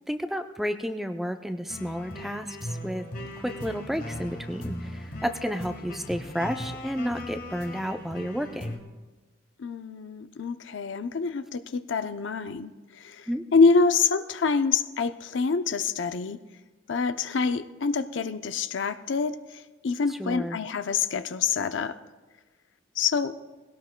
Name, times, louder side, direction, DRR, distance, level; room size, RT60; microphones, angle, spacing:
voice 1, 0.1-3.0 3.4-8.8 13.3-13.4 20.2-20.6, equal, ahead, 6 dB, 0.4 m, -31 dB
sound 1, 1.7-8.8, left 1 dB, 45° left, 1.5 m, -38 dB
voice 2, 9.6-16.4 16.9-22.0 23.0-23.3, left 5 dB, 70° left, 10 dB, 0.5 m, -26 dB
21.0 x 17.0 x 2.2 m, 1.2 s
head